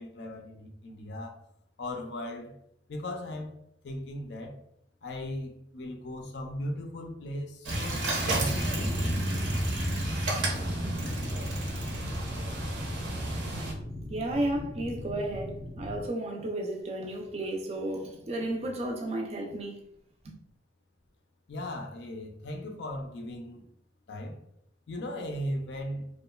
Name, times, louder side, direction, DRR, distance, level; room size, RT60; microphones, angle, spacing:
voice 1, 0.0-1.3 1.8-2.5 2.9-3.5 3.8-4.6 5.0-9.0 21.5-23.6 24.1-24.4 24.9-26.1, left 1 dB, 60° left, 3 dB, 0.4 m, -37 dB
sound 1, 7.6-13.7, right 1 dB, 80° right, 0.7 m, -31 dB
sound 2, 8.5-16.0, left 1 dB, 20° left, 0.6 m, -40 dB
voice 2, 14.1-19.8 20.2-20.3, right 1 dB, 35° right, 1 dB, 0.4 m, -33 dB
2.9 x 2.2 x 2.2 m, 0.73 s
head